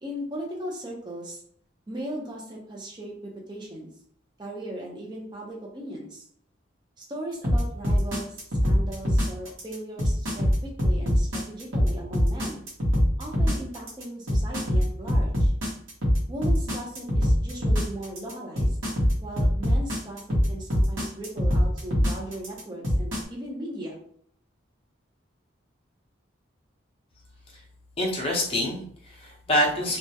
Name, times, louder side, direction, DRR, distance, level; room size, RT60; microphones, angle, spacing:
voice 1, 0.0-1.4 1.9-3.9 4.4-6.3 7.0-12.6 13.2-15.5 16.3-18.8 19.2-24.0, right 1 dB, 20° right, -2 dB, 0.5 m, -37 dB
sound 1, 7.4-23.2, equal, 75° right, 0.9 m, -23 dB
voice 2, 28.0-30.0, left 1 dB, 30° left, -3 dB, 0.6 m, -26 dB
2.2 x 2.0 x 2.7 m, 0.63 s
head